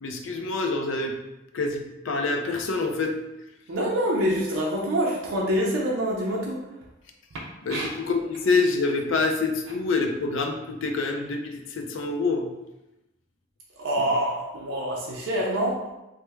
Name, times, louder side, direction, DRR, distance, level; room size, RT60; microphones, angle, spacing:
voice 1, 0.0-1.2 1.5-3.2 7.6-12.5 14.0-14.2, left 3 dB, 80° left, 4 dB, 0.4 m, -26 dB
voice 2, 3.7-6.6 7.7-7.9 13.8-15.8, equal, 85° right, -3 dB, 0.5 m, -26 dB
3.1 x 2.0 x 3.3 m, 0.96 s
head